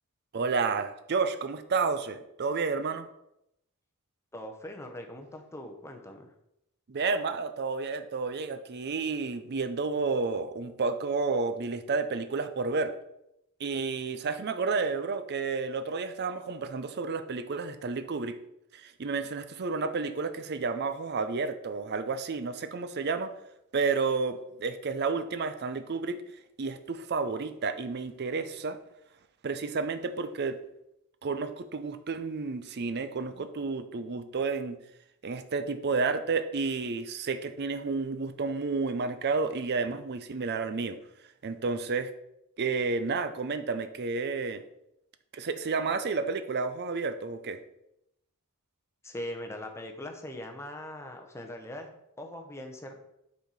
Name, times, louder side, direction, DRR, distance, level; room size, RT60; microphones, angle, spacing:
voice 1, 0.3-3.0 6.9-12.9 13.6-18.4 18.7-23.3 23.7-26.2 26.6-28.8 29.4-30.6 31.2-34.8 35.2-41.0 41.4-42.1 42.6-44.6 45.3-47.6, right 4 dB, 50° right, 10 dB, 0.5 m, -31 dB
voice 2, 4.3-6.3 49.0-53.0, left 1 dB, 10° left, 3 dB, 0.8 m, -41 dB
6.7 x 4.2 x 4.7 m, 0.82 s
head